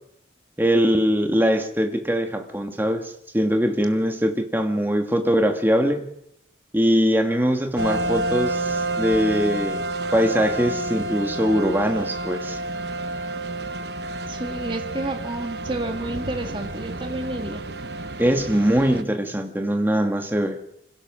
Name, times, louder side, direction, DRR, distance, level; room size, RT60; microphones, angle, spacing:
voice 1, 0.6-6.1 6.7-9.8 10.1-12.6 18.2-20.6, equal, 10° right, 5 dB, 1.8 m, -22 dB
sound 1, 7.8-19.0, right 2 dB, 65° right, 1.1 m, -29 dB
voice 2, 14.3-17.6, right 2 dB, 30° right, 5 dB, 1.7 m, -30 dB
25.5 x 17.0 x 6.2 m, 0.75 s
head